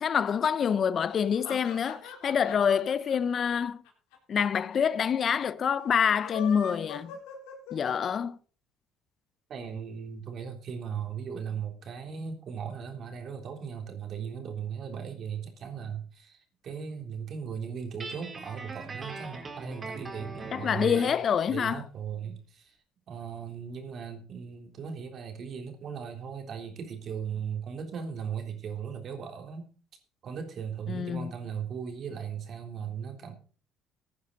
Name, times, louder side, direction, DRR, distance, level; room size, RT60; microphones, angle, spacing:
voice 1, 0.0-3.8 4.3-7.1 7.7-8.4 20.5-21.8 30.9-31.3, left 7 dB, 45° left, 0.7 m, -26 dB
sound 1, 1.1-4.4 4.7-4.8 5.0-5.1 6.1-8.2, left 7 dB, 90° left, 3.8 m, -42 dB
voice 2, 9.5-21.2 21.5-22.8 23.1-29.7 30.2-33.3, right 7 dB, 55° right, 3.6 m, -37 dB
Guitar, 18.0-21.2, right 3 dB, 30° right, 4.0 m, -40 dB
16.0 x 9.5 x 4.1 m
supercardioid pair, 90°, 0 cm